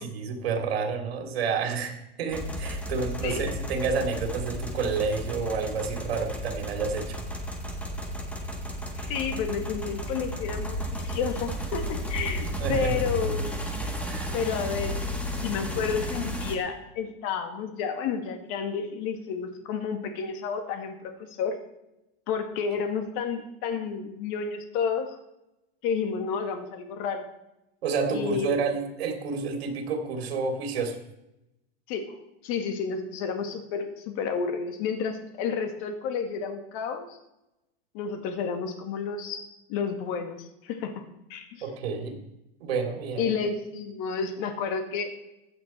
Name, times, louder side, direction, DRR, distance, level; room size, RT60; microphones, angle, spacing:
voice 1, 0.0-7.1 12.6-12.9 14.0-14.4 27.8-31.0 41.6-42.2 42.6-43.3, right 5 dB, 75° right, 3 dB, 3.4 m, -29 dB
sound 1, 2.3-16.6, equal, 5° left, 1.7 m, -33 dB
voice 2, 9.0-13.5 14.3-15.0 15.4-21.6 22.3-25.2 25.8-27.2 28.1-28.7 31.9-32.2 32.4-37.2 37.9-39.4 39.7-41.0 41.3-41.6 43.2-45.2, left 6 dB, 45° left, 6 dB, 2.2 m, -31 dB
15.5 x 10.5 x 4.5 m, 0.89 s
supercardioid pair, 150°, 30 cm